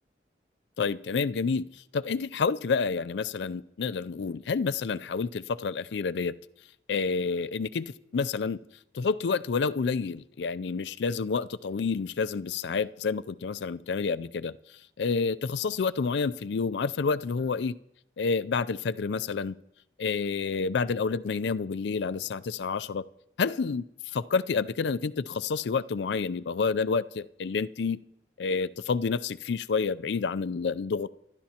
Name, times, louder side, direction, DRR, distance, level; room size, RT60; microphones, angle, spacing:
voice 1, 0.8-1.6 1.9-6.4 6.9-8.6 8.9-14.6 15.0-17.7 18.2-19.6 20.0-23.0 23.4-23.8 24.1-28.0 28.4-31.1, left 5 dB, 75° left, 15 dB, 0.4 m, -29 dB
25.0 x 12.5 x 2.9 m, 0.78 s
head